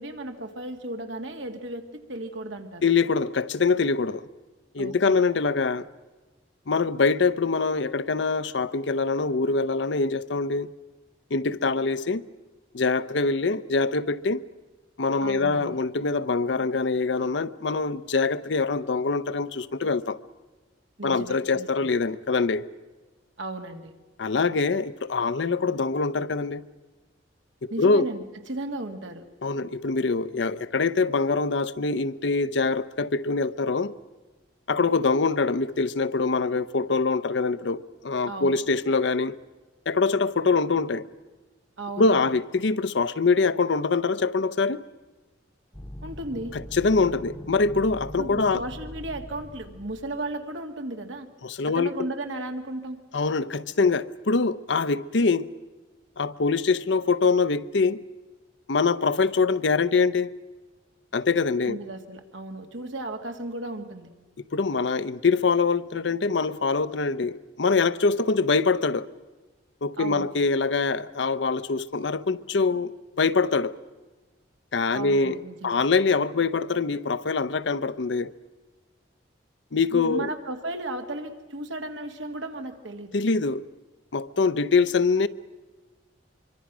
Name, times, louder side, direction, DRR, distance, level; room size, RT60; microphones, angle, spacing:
voice 1, 0.0-2.8 4.8-5.3 15.2-15.8 21.0-21.9 23.4-23.9 27.7-29.2 38.3-38.7 41.8-42.3 46.0-46.6 48.2-51.3 51.7-53.0 61.7-64.1 70.0-70.3 74.9-75.8 79.9-83.1, right 2 dB, 90° right, 2.1 m, -35 dB
voice 2, 2.8-4.2 4.7-5.9 6.7-10.7 11.3-12.2 12.7-14.4 15.0-20.2 21.0-22.6 24.2-26.6 27.6-28.1 29.4-33.9 34.7-39.4 39.9-41.1 42.0-44.8 46.5-48.6 51.4-51.9 53.1-55.5 56.2-58.0 58.7-60.3 61.1-61.8 64.5-69.1 69.8-72.9 73.2-73.7 74.7-75.4 75.6-78.3 79.7-80.3 83.1-83.6 84.1-85.3, left 4 dB, 75° left, 0.7 m, -24 dB
sound 1, 45.7-50.3, left 1 dB, 15° left, 0.8 m, -41 dB
24.5 x 24.5 x 6.2 m
head